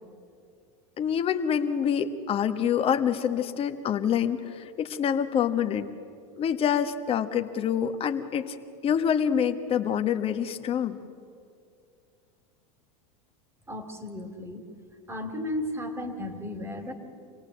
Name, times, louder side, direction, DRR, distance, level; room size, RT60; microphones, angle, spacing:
voice 1, 1.0-5.9 6.4-8.5 8.8-11.0, left 8 dB, 35° left, 7 dB, 1.4 m, -26 dB
voice 2, 13.7-14.7 15.1-16.9, left 1 dB, 15° right, 7 dB, 2.5 m, -34 dB
26.5 x 18.5 x 8.0 m, 2.4 s
supercardioid pair, 120°, 18 cm